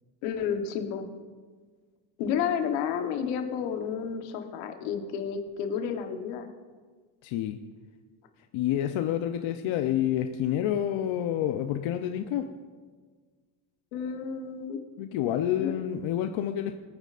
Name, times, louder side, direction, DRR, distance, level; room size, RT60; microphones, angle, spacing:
voice 1, 0.2-1.1 2.2-6.5 13.9-14.8 15.6-15.7, left 7 dB, 85° left, 6 dB, 1.3 m, -31 dB
voice 2, 7.2-7.6 8.5-12.5 15.0-16.7, left 11 dB, 70° left, 7 dB, 0.8 m, -28 dB
21.5 x 9.1 x 2.5 m, 1.5 s
supercardioid pair, 65°, 50 cm